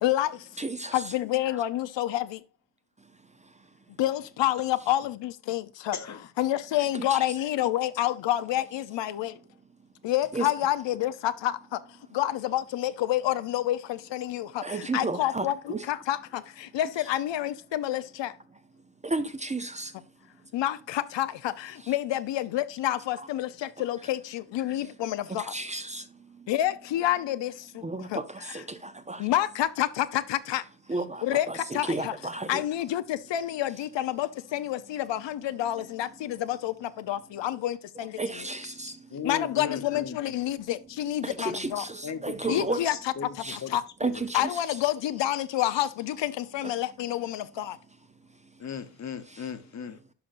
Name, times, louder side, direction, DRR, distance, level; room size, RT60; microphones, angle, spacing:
voice 1, 0.0-0.5 0.9-2.4 4.0-6.0 6.4-9.4 10.0-11.8 12.1-18.4 20.5-25.5 26.5-27.8 28.1-28.2 29.2-30.6 31.2-32.1 32.5-38.2 39.2-41.8 42.5-43.0 43.5-43.8 44.3-47.8, left 13 dB, 90° left, 0.7 m, -28 dB
voice 2, 0.6-1.1 3.0-3.1 3.4-3.7 6.9-7.2 10.3-10.5 14.6-15.9 19.0-20.0 21.8-21.9 25.3-26.5 27.8-29.3 30.9-32.6 38.0-39.1 41.2-42.8 43.4-43.6 44.0-44.6 46.6-46.8 48.4-48.5 49.3-49.5, right 2 dB, 15° right, 0.5 m, -33 dB
voice 3, 5.9-6.3 39.1-40.2 42.0-44.2 48.6-50.0, left 7 dB, 40° left, 0.9 m, -37 dB
11.5 x 5.4 x 2.5 m
wide cardioid pair, 140°, 42 cm